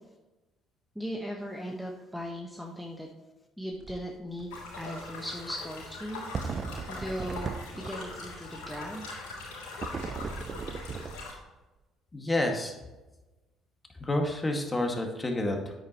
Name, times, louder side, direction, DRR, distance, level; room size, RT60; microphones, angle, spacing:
voice 1, 0.9-3.1 3.6-6.2 6.9-9.1, equal, ahead, 0 dB, 1.3 m, -38 dB
sound 1, 3.7-4.1 4.4-4.5 6.3-8.2 9.8-11.6, right 5 dB, 45° right, 0.6 m, -37 dB
sound 2, 4.5-11.3, left 3 dB, 80° left, 3.3 m, -42 dB
voice 2, 12.1-12.7 14.0-15.8, left 1 dB, 20° left, 2 dB, 2.0 m, -29 dB
9.5 x 8.6 x 3.1 m, 1.1 s
hypercardioid pair, 55°, 0 cm